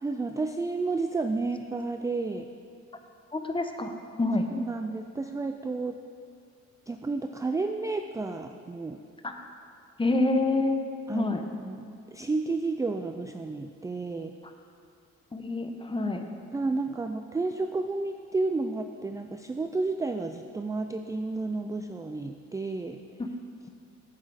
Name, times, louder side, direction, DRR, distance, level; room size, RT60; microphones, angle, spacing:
voice 1, 0.0-2.5 4.5-6.0 6.9-9.0 11.1-11.3 11.6-14.3 16.5-23.0, right 3 dB, 10° right, 7 dB, 0.3 m, -31 dB
voice 2, 3.3-3.9 4.2-4.5 9.2-9.3 10.0-10.8 11.1-11.4 15.3-16.2 23.2-23.3, left 2 dB, 15° left, 5 dB, 0.9 m, -27 dB
9.0 x 8.2 x 4.8 m, 2.4 s
cardioid pair, 90°, 30 cm